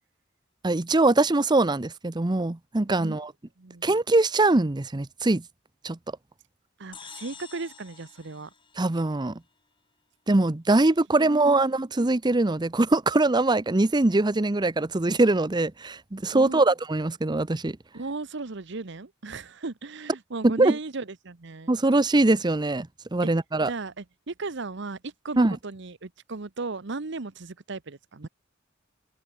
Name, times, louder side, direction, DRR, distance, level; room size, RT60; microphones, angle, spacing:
voice 1, 0.6-3.3 3.8-5.4 5.8-6.0 8.8-9.4 10.3-17.8 20.4-20.8 21.7-23.7 25.4-25.6, right 2 dB, 20° right, 0.7 m, -22 dB
voice 2, 3.6-3.9 6.8-8.5 11.2-11.5 16.3-16.6 17.9-21.8 23.2-23.3 23.6-28.3, right 3 dB, 65° right, 1.0 m, -36 dB
sound 1, 6.9-9.5, left 6 dB, 25° left, 4.8 m, -48 dB
open air
head